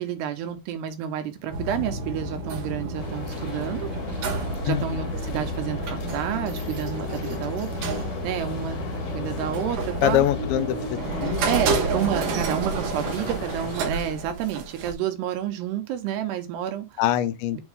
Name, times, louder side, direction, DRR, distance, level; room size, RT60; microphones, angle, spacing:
voice 1, 0.0-3.9 4.6-7.7 8.2-8.8 9.1-10.3 11.4-17.0, right 10 dB, 85° right, 3.1 m, -29 dB
sound 1, 1.5-14.9, right 2 dB, 65° right, 2.9 m, -30 dB
sound 2, 3.0-13.9, left 6 dB, 55° left, 2.1 m, -37 dB
voice 2, 4.7-5.0 10.0-11.5 17.0-17.6, left 12 dB, 80° left, 2.4 m, -24 dB
7.7 x 3.6 x 3.5 m
omnidirectional pair, 4.7 m